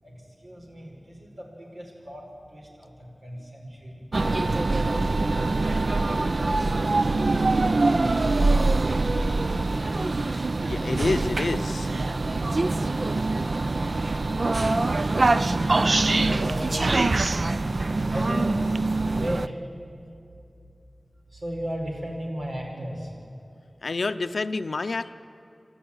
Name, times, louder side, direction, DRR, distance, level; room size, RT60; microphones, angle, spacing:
voice 1, 0.0-4.2 16.0-16.7 18.0-18.8 19.1-19.6 21.3-23.1, equal, 85° right, -1 dB, 4.9 m, -37 dB
sound 1, 4.1-19.5, right 2 dB, 60° right, 0.5 m, -24 dB
voice 2, 10.7-11.9 15.0-15.2 23.8-25.1, left 3 dB, 85° left, 11 dB, 0.5 m, -29 dB
27.5 x 12.5 x 8.8 m, 2.7 s
wide cardioid pair, 65°, 0 cm